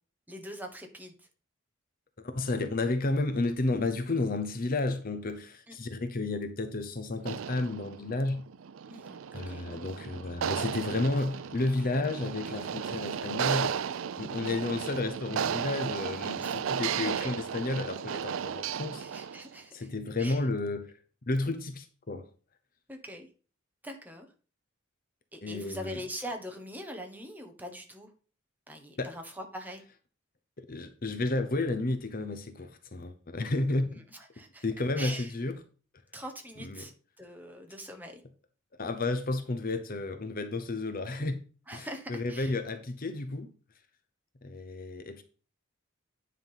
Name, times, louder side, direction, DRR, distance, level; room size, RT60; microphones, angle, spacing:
voice 1, 0.3-1.3 5.7-5.8 8.9-9.2 9.5-9.7 16.4-16.6 17.0-17.4 19.0-19.9 20.2-20.4 22.9-23.3 23.8-24.3 25.3-28.1 28.7-29.8 33.8-34.6 35.0-35.3 36.1-36.9 37.2-38.2 41.7-42.6, equal, 10° right, 1.3 m, -42 dB
voice 2, 2.2-8.5 9.3-13.8 14.2-19.0 19.7-20.9 21.2-22.2 25.4-26.0 29.0-29.1 30.6-34.0 34.6-35.5 36.6-36.9 38.8-41.4 41.7-43.5 44.4-45.2, left 2 dB, 45° left, 0.8 m, -32 dB
sound 1, 7.2-19.5, right 7 dB, 70° right, 0.4 m, -34 dB
9.7 x 3.7 x 5.6 m
head